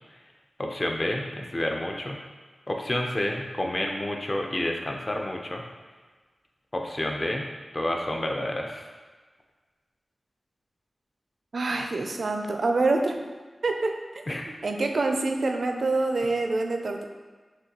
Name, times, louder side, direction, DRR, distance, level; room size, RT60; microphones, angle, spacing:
voice 1, 0.6-2.2 2.7-5.6 6.7-7.4 7.7-8.8 14.3-14.5, left 1 dB, 35° left, 1 dB, 0.6 m, -29 dB
voice 2, 11.5-13.2 13.6-14.2 14.6-17.0, right 3 dB, 70° right, 4 dB, 0.4 m, -26 dB
6.3 x 2.3 x 2.9 m, 1.4 s
wide cardioid pair, 70°, 0 cm